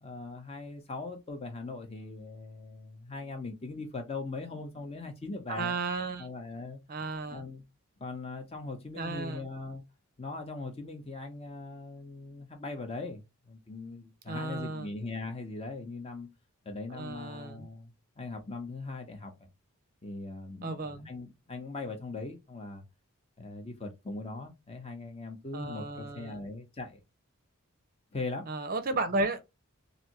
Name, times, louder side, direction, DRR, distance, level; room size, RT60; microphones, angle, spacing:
voice 1, 0.0-5.8 6.2-6.8 7.3-7.6 8.0-9.8 10.2-16.3 16.6-19.3 20.0-22.8 23.4-27.0 28.1-28.5, left 3 dB, 25° left, 0.8 m, -40 dB
voice 2, 5.5-6.3 6.9-7.4 8.9-9.4 14.3-14.9 16.9-17.7 20.6-21.1 25.5-26.4 28.5-29.4, right 3 dB, 40° right, 0.6 m, -34 dB
3.3 x 2.6 x 2.9 m
head